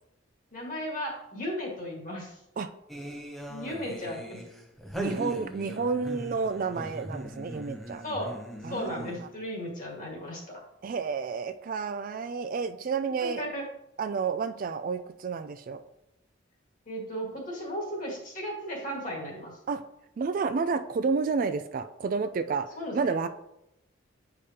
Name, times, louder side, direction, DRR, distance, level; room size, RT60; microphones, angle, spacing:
voice 1, 0.5-2.4 3.5-4.4 8.0-8.4 8.7-10.6 13.2-13.7 16.9-19.5 22.8-23.1, equal, 40° left, -1 dB, 1.8 m, -35 dB
sound 1, 2.9-9.4, right 1 dB, ahead, 0.6 m, -40 dB
voice 2, 4.9-8.0 8.6-9.3 10.8-13.5 14.0-15.8 19.7-19.8 20.2-22.7 22.9-23.3, right 5 dB, 45° right, 10 dB, 0.3 m, -30 dB
8.3 x 5.0 x 2.8 m, 0.85 s
head